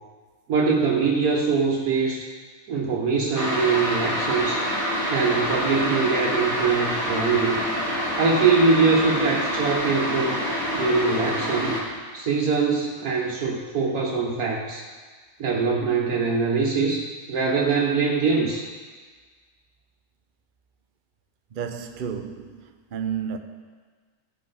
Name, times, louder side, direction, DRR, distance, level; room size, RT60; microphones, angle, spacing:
voice 1, 0.5-2.3 2.7-4.6 5.1-7.6 8.2-10.4 10.7-11.8 12.1-14.8 15.4-17.0 17.3-18.7, right 4 dB, 75° right, -2 dB, 1.5 m, -23 dB
sound 1, 3.4-11.8, equal, 50° left, 2.5 m, -26 dB
voice 2, 21.5-22.6 22.9-23.4, right 7 dB, 50° right, 6 dB, 0.6 m, -31 dB
15.5 x 5.4 x 5.5 m, 1.5 s
omnidirectional pair, 1.5 m